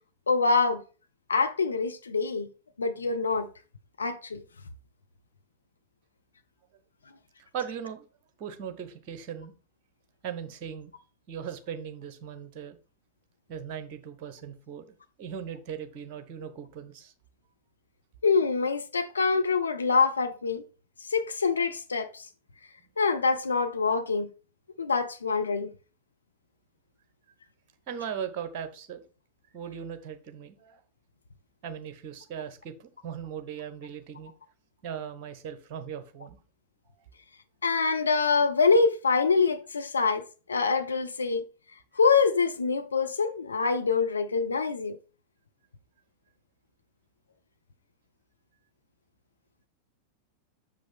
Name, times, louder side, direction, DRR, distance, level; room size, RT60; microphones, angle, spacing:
voice 1, 0.3-0.8 1.3-2.5 2.8-3.5 4.0-4.4 18.2-20.6 21.1-22.3 23.0-24.3 24.8-25.7 37.6-41.4 42.0-45.0, left 4 dB, 75° left, 0.5 m, -25 dB
voice 2, 7.4-8.0 8.4-9.5 10.2-10.9 11.3-12.8 13.5-17.1 27.9-29.0 29.5-30.8 31.6-34.3 34.8-36.4, right 8 dB, 40° right, 1.0 m, -38 dB
6.5 x 5.2 x 3.6 m
figure-of-eight pair, 90°, 0 cm